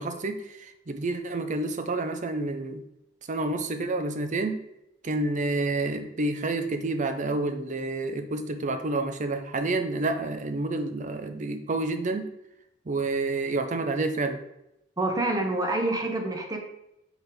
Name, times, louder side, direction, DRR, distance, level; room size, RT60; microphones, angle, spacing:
voice 1, 0.0-2.8 3.3-4.6 5.0-12.3 12.9-14.4, right 2 dB, 40° right, 7 dB, 0.6 m, -29 dB
voice 2, 15.0-16.6, right 2 dB, 20° right, 3 dB, 0.9 m, -27 dB
4.9 x 4.0 x 5.0 m, 0.84 s
head